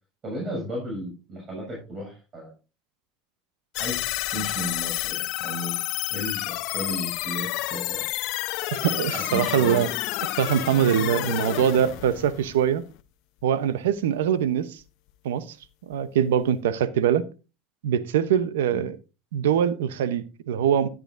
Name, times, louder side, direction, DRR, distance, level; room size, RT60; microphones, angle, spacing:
voice 1, 0.2-2.5 3.8-4.0 4.3-5.8 6.1-8.1 9.1-9.8 18.7-18.9, equal, 35° right, 6.7 m, -34 dB
sound 1, 3.7-13.0, left 18 dB, 65° left, 0.7 m, -30 dB
voice 2, 8.7-9.9 10.4-12.8 13.4-14.8 15.2-15.6 15.9-17.2 17.8-19.0 19.3-20.9, right 9 dB, 90° right, 0.8 m, -23 dB
13.0 x 8.9 x 2.6 m
supercardioid pair, 100°, 0 cm